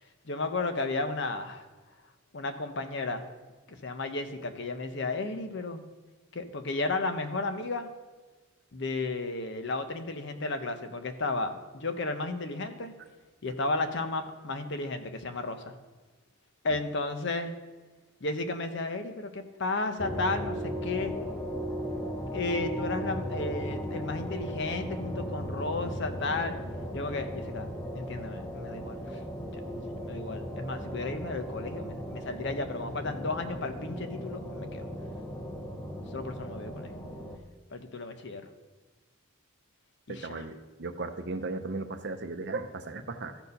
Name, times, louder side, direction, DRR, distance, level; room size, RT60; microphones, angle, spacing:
voice 1, 0.2-1.6 2.3-3.3 3.7-5.8 6.3-7.9 8.7-12.9 13.4-15.7 16.6-17.5 18.2-21.1 22.3-26.6 26.9-27.7 28.0-29.2 29.7-34.9 36.1-36.9 37.7-38.5 40.1-40.5, left 3 dB, 55° left, 8 dB, 0.8 m, -33 dB
sound 1, 20.0-37.4, equal, 10° left, 0.7 m, -37 dB
voice 2, 40.1-43.4, right 3 dB, 55° right, 8 dB, 0.7 m, -36 dB
13.5 x 4.6 x 5.3 m, 1.3 s
head